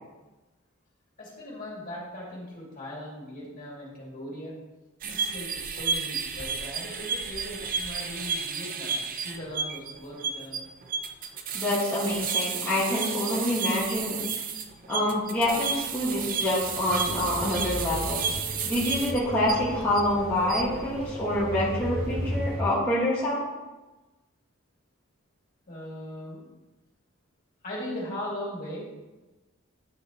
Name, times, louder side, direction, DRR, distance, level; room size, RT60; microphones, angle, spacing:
voice 1, 1.2-4.5 5.0-10.6 25.7-26.5 27.6-28.8, left 1 dB, 40° left, -5 dB, 2.8 m, -39 dB
sound 1, 5.0-20.0 20.4-20.8, right 6 dB, 40° right, 0.6 m, -32 dB
voice 2, 11.5-14.2 14.9-18.2 18.6-23.4, left 1 dB, 10° left, -10 dB, 1.8 m, -26 dB
sound 2, 15.3-22.6, equal, 85° right, 1.7 m, -35 dB
9.8 x 6.1 x 3.1 m, 1.1 s
head